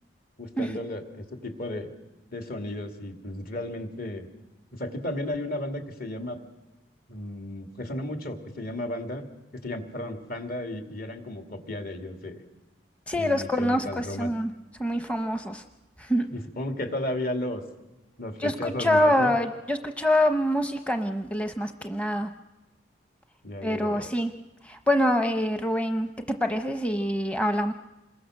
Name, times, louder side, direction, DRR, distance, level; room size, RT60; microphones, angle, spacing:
voice 1, 0.4-1.9 2.3-4.3 4.7-6.4 7.1-9.2 9.5-12.4 13.1-14.3 16.3-17.6 18.2-19.3 23.4-24.1, left 1 dB, 50° left, 5 dB, 2.7 m, -34 dB
voice 2, 13.1-14.5 14.8-15.6 16.0-16.3 18.4-22.3 23.6-24.3 24.6-27.7, left 1 dB, 5° left, 6 dB, 0.8 m, -25 dB
27.0 x 21.5 x 6.5 m, 1.0 s
head